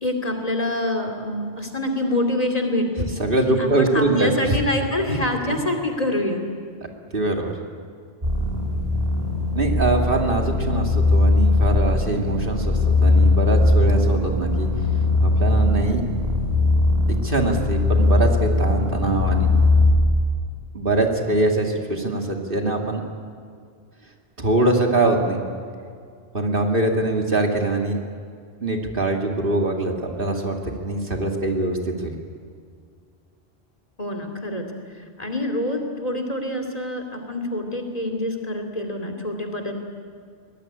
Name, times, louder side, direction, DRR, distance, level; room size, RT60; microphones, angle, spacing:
voice 1, 0.0-3.1 3.6-6.4 34.0-34.6 35.2-39.7, left 1 dB, 35° left, 3 dB, 2.8 m, -26 dB
voice 2, 3.2-4.6 5.1-5.2 7.1-7.5 9.5-14.7 15.2-16.0 17.2-19.5 20.7-23.0 24.4-25.4 26.3-28.0 28.6-29.9 30.2-32.1, right 2 dB, 55° right, 2 dB, 2.5 m, -23 dB
sound 1, 8.2-19.9, left 2 dB, 35° right, 3.7 m, -20 dB
23.0 x 19.0 x 9.8 m, 2.2 s
omnidirectional pair, 1.1 m